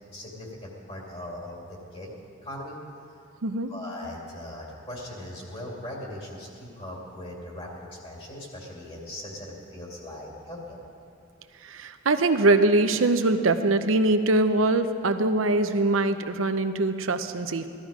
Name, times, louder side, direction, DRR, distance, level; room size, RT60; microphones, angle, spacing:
voice 1, 0.1-2.1 2.4-2.8 3.7-10.8, left 1 dB, 30° left, -2 dB, 2.5 m, -39 dB
voice 2, 11.6-17.7, right 2 dB, 75° right, 8 dB, 0.7 m, -23 dB
16.5 x 13.0 x 5.0 m, 2.5 s
head